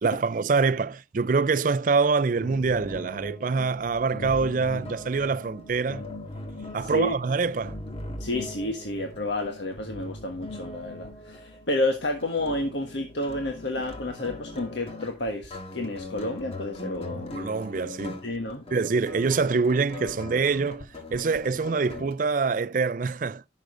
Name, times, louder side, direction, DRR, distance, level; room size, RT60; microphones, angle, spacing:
voice 1, 0.0-6.0 6.7-7.8 17.1-18.2 18.7-23.4, right 4 dB, 45° right, 0.4 m, -25 dB
sound 1, 2.3-22.1, left 2 dB, 30° left, 1.5 m, -40 dB
voice 2, 6.8-7.1 8.2-17.4 18.2-18.6, left 2 dB, 70° left, 1.5 m, -30 dB
11.5 x 6.4 x 3.8 m
head